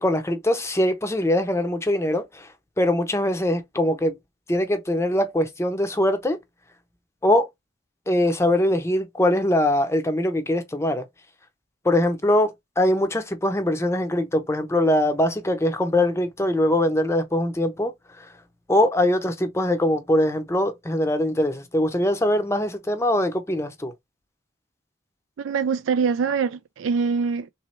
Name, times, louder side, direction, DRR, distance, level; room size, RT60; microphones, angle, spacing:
voice 1, 0.0-4.2 4.5-6.4 7.2-7.5 8.1-11.1 11.8-18.3 18.7-23.9, left 1 dB, 15° left, 0.6 m, -22 dB
voice 2, 25.4-27.5, right 5 dB, 80° right, 0.4 m, -24 dB
3.3 x 3.2 x 4.2 m
head